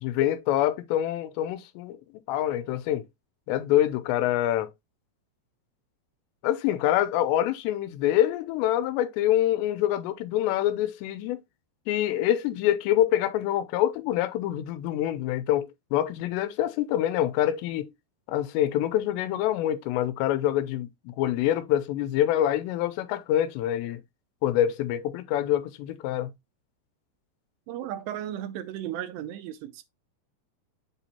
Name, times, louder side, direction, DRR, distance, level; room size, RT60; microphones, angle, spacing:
voice 1, 0.0-2.0 2.3-3.1 3.5-4.7 6.4-11.4 11.9-17.9 18.3-24.0 24.4-26.3, left 12 dB, 90° left, 2.8 m, -26 dB
voice 2, 27.7-29.8, right 11 dB, 85° right, 2.8 m, -35 dB
7.6 x 3.0 x 4.2 m
omnidirectional pair, 5.0 m